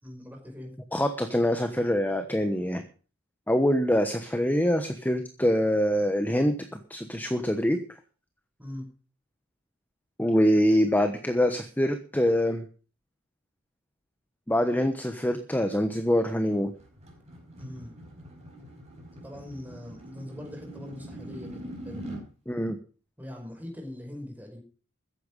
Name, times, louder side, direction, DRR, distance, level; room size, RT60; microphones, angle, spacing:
voice 1, 0.0-0.7 8.6-8.9 17.6-17.9 19.2-22.1 23.2-24.6, left 1 dB, 10° right, 2 dB, 5.3 m, -41 dB
voice 2, 0.9-2.8 3.5-7.8 10.2-12.7 14.5-16.7 22.5-22.8, equal, 10° left, 7 dB, 1.1 m, -25 dB
sound 1, 16.3-22.3, right 1 dB, 35° right, 5.2 m, -43 dB
14.5 x 10.5 x 5.4 m, 0.38 s
head